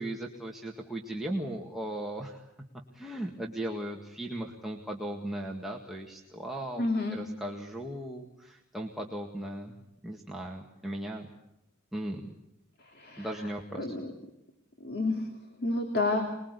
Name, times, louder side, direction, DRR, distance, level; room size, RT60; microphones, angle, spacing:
voice 1, 0.0-2.4 2.9-9.8 10.0-11.3 11.9-12.2 13.2-13.9, right 1 dB, ahead, -1 dB, 1.9 m, -37 dB
voice 2, 6.8-7.2 12.9-13.3 13.8-14.1 14.8-15.3 15.6-16.3, left 2 dB, 50° left, 4 dB, 2.8 m, -29 dB
25.5 x 21.5 x 8.3 m, 0.87 s
head